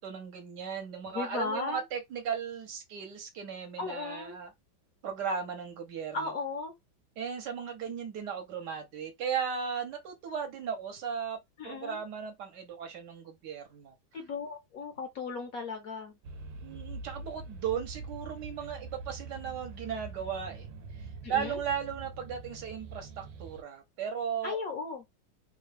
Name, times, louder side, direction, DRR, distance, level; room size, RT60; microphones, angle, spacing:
voice 1, 0.0-4.5 5.0-6.3 7.2-11.4 11.6-13.9 16.6-20.7 21.0-24.6, right 7 dB, 65° right, 1.4 m, -36 dB
voice 2, 1.1-1.8 3.8-4.4 6.1-6.7 11.6-12.0 14.1-16.1 21.2-21.6 24.4-25.0, left 4 dB, 65° left, 1.0 m, -36 dB
sound 1, 16.2-23.6, right 3 dB, 90° right, 1.3 m, -44 dB
3.4 x 2.2 x 3.2 m
omnidirectional pair, 2.0 m